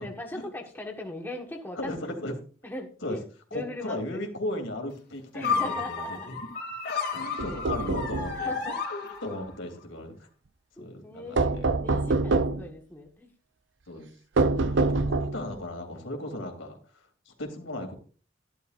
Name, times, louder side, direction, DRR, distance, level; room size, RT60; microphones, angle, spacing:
voice 1, 0.0-1.9 2.6-3.2 3.5-4.2 5.3-6.3 8.3-8.8 10.8-13.3, left 1 dB, 10° left, 1 dB, 1.5 m, -39 dB
voice 2, 1.7-2.4 3.0-3.2 3.5-6.5 6.9-10.3 10.8-11.7 13.9-14.1 14.6-17.9, left 1 dB, 90° left, 3 dB, 3.1 m, -37 dB
sound 1, 5.4-9.6, left 5 dB, 55° left, 3.4 m, -32 dB
sound 2, 7.4-8.4 11.4-12.7 14.4-15.5, right 3 dB, 65° right, 0.6 m, -25 dB
12.5 x 11.5 x 2.5 m, 0.39 s
head